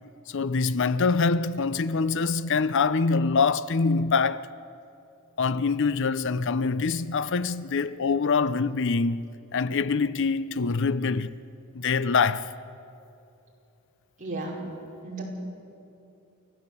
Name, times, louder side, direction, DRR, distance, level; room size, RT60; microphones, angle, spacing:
voice 1, 0.3-4.5 5.4-11.4 11.7-12.5, left 4 dB, 60° left, 0.6 m, -25 dB
voice 2, 14.2-14.6 15.0-15.2, right 2 dB, 35° right, 5.3 m, -34 dB
29.0 x 14.5 x 8.3 m
head